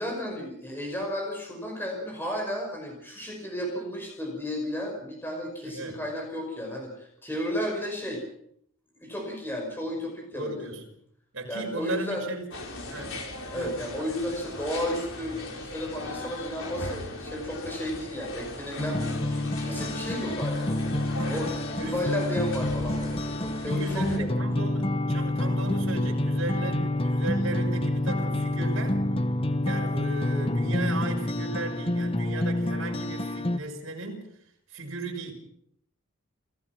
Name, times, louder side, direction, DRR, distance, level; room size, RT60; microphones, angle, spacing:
voice 1, 0.0-8.2 9.0-10.7 11.5-12.2 13.5-21.5 21.8-24.3 26.8-26.9, equal, 10° left, 1 dB, 5.3 m, -33 dB
voice 2, 5.6-6.0 10.3-10.8 11.3-12.5 12.9-13.2 13.5-13.8 21.1-21.4 21.8-22.1 23.7-29.0 29.6-34.3 34.7-35.3, right 2 dB, 65° right, 1 dB, 6.0 m, -36 dB
sound 1, 12.5-24.2, left 2 dB, 70° left, 4.7 m, -38 dB
sound 2, 18.8-33.6, left 1 dB, 25° left, 0.9 m, -28 dB
28.0 x 16.0 x 6.0 m, 0.70 s
head